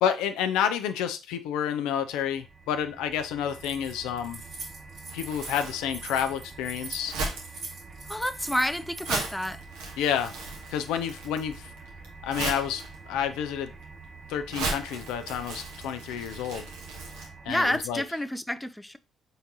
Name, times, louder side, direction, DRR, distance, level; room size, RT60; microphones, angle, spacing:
voice 1, 0.0-4.4 5.1-7.1 10.0-10.3 10.7-11.7 12.2-12.8 13.1-13.7 14.3-16.7 17.5-18.0, left 9 dB, 75° left, 0.4 m, -29 dB
sound 1, 2.0-18.2, right 4 dB, 40° right, 0.9 m, -47 dB
Keys jangling, 3.5-9.5, right 3 dB, 60° right, 2.2 m, -42 dB
Crumpling crinkling, 5.1-17.3, right 3 dB, 80° right, 1.1 m, -38 dB
voice 2, 8.1-9.6 17.5-19.0, left 1 dB, 5° left, 0.4 m, -29 dB
4.4 x 3.7 x 2.8 m
hypercardioid pair, 45°, 0 cm